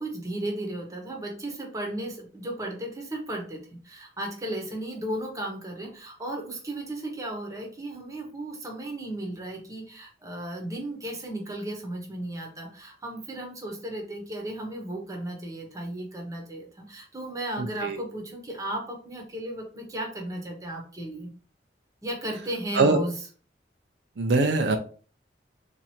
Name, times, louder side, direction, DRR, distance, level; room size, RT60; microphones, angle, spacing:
voice 1, 0.0-21.3 22.0-23.2, right 1 dB, 20° right, 0 dB, 1.0 m, -35 dB
voice 2, 17.6-18.0 22.7-23.0 24.2-24.8, right 3 dB, 80° right, 6 dB, 0.5 m, -22 dB
3.0 x 2.6 x 4.2 m, 0.40 s
head